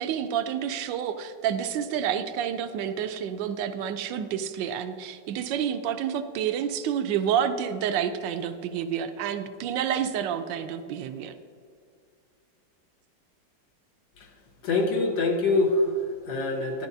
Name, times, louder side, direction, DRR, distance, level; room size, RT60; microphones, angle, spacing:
voice 1, 0.0-11.3, right 8 dB, 85° right, 10 dB, 1.3 m, -29 dB
voice 2, 14.6-16.9, left 2 dB, 85° left, 1 dB, 1.7 m, -25 dB
11.0 x 10.5 x 2.7 m, 2.2 s
omnidirectional pair, 2.0 m